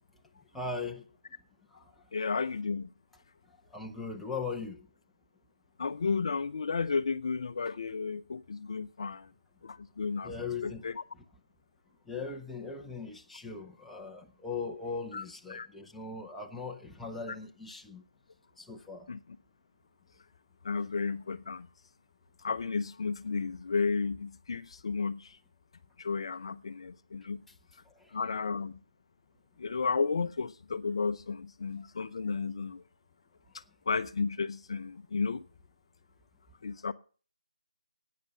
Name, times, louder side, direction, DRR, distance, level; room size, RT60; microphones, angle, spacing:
voice 1, 0.5-1.0 3.7-4.8 10.2-10.8 12.1-18.0 18.6-19.1, left 4 dB, ahead, 0.8 m, -39 dB
voice 2, 2.1-2.9 5.8-9.3 9.6-10.3 10.6-11.0 15.1-15.2 15.5-15.7 19.1-19.2 20.6-21.7 22.4-25.4 26.0-27.4 28.1-28.8 29.6-32.8 33.9-35.4 36.6-36.9, left 4 dB, 50° left, 0.6 m, -33 dB
12.0 x 9.4 x 6.9 m
figure-of-eight pair, 160°, 4 cm